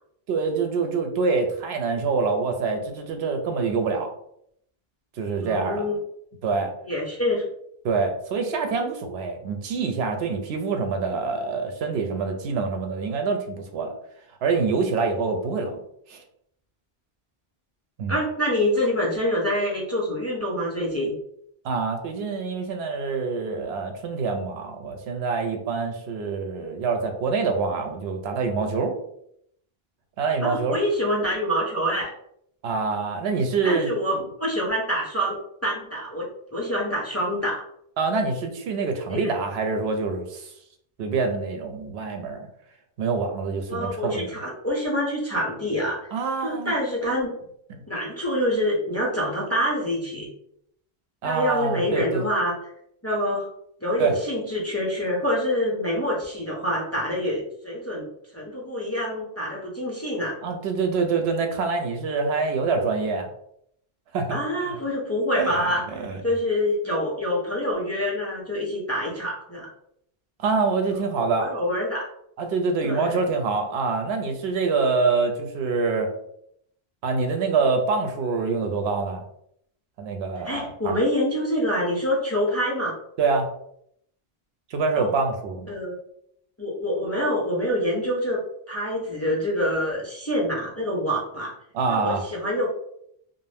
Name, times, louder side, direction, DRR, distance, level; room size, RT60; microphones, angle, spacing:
voice 1, 0.3-4.1 5.2-5.8 6.4-6.7 7.8-13.9 14.4-15.8 16.1-16.2 18.0-18.2 21.6-28.9 30.2-30.8 32.6-33.9 38.0-40.5 41.0-42.5 43.0-44.3 46.1-46.7 47.7-47.8 51.2-52.2 54.0-54.2 60.4-63.3 64.1-64.8 65.3-65.6 65.9-66.2 70.4-71.5 72.4-76.1 77.0-79.2 80.0-80.9 83.2-83.5 84.7-85.7 91.7-92.2, right 4 dB, 90° right, 5 dB, 0.8 m, -25 dB
voice 2, 5.4-5.9 6.8-7.4 18.1-21.1 30.4-32.1 33.6-37.6 39.1-39.3 43.7-46.1 46.4-47.3 47.9-50.3 51.2-52.5 53.0-53.5 53.8-58.1 58.3-60.4 64.3-65.8 66.2-69.7 71.3-72.1 72.8-73.2 80.4-83.0 85.0-85.1 85.7-85.9 86.6-88.4 88.7-91.5 91.9-92.7, equal, 20° left, -4 dB, 0.4 m, -26 dB
2.6 x 2.1 x 3.2 m, 0.71 s
omnidirectional pair, 1.0 m